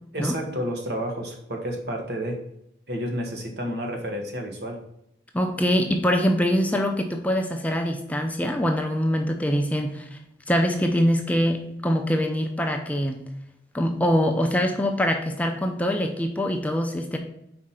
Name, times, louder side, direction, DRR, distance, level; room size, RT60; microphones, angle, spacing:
voice 1, 0.1-2.4 2.9-4.8, equal, 70° right, 2 dB, 1.3 m, -30 dB
voice 2, 5.3-10.1 10.5-13.2 13.7-17.2, equal, 10° left, 3 dB, 0.5 m, -24 dB
4.9 x 4.3 x 5.7 m, 0.77 s
head